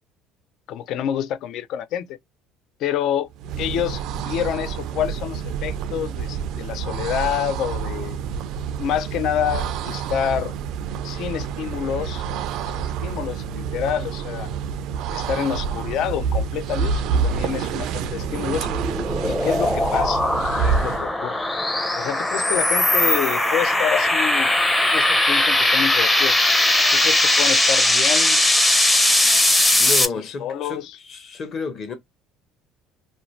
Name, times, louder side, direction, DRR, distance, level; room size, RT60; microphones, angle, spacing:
voice 1, 0.7-2.2 2.8-3.3 3.6-8.2 8.8-10.5 11.0-12.2 12.7-14.5 15.1-18.7 19.3-21.4 22.0-26.4 26.9-28.4 30.4-31.0, left 10 dB, 60° left, 0.3 m, -27 dB
sound 1, 3.3-21.1, right 6 dB, 65° right, 0.3 m, -28 dB
sound 2, 18.0-30.1, left 1 dB, 10° left, 0.5 m, -19 dB
voice 2, 29.8-31.9, left 4 dB, 40° left, 0.8 m, -31 dB
2.5 x 2.0 x 3.0 m
cardioid pair, 115°, 0 cm